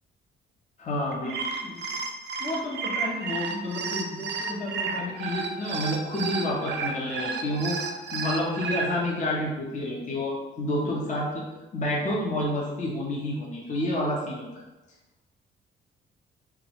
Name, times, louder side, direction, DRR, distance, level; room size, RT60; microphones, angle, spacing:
voice 1, 0.8-1.9 2.4-11.4 11.7-14.6, left 1 dB, 35° left, -3 dB, 0.7 m, -30 dB
sound 1, 1.1-8.9, right 5 dB, 60° right, 0.5 m, -32 dB
3.5 x 2.3 x 3.0 m, 1.1 s
cardioid pair, 90°, 20 cm